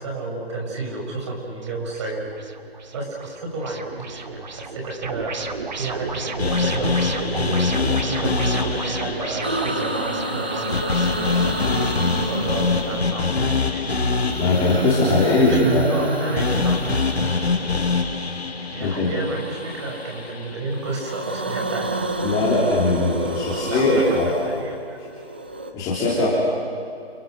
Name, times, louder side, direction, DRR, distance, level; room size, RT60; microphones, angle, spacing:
voice 1, 0.0-2.3 2.9-5.3 5.8-7.7 8.0-11.6 12.1-14.0 15.1-16.8 18.7-21.9 23.5-25.0, right 2 dB, 30° right, 0 dB, 6.8 m, -30 dB
sound 1, 1.6-13.1, right 4 dB, 45° right, 2.2 m, -34 dB
sound 2, 6.4-20.6, left 4 dB, 80° left, 4.0 m, -25 dB
sound 3, 9.4-13.4 14.1-17.8 19.2-20.4 20.7-25.7, right 1 dB, 10° right, 0.6 m, -29 dB
voice 2, 14.4-15.9 18.8-19.1 22.2-24.3 25.7-26.4, left 2 dB, 10° left, -7 dB, 3.4 m, -20 dB
29.5 x 29.0 x 6.7 m, 2.5 s
hypercardioid pair, 165°, 31 cm